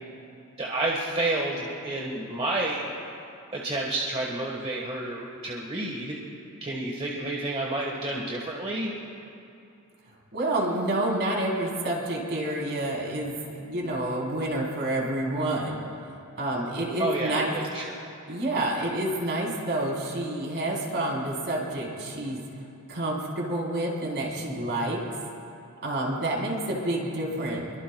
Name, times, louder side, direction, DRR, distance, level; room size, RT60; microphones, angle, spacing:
voice 1, 0.6-2.8 3.5-6.2 6.6-9.0 17.0-18.0, right 2 dB, 25° right, -2 dB, 1.4 m, -30 dB
voice 2, 10.3-15.8 16.4-17.5 18.3-22.4 22.9-25.0 25.8-27.7, right 1 dB, 50° right, -3 dB, 3.9 m, -28 dB
27.0 x 23.0 x 2.3 m, 2.7 s
head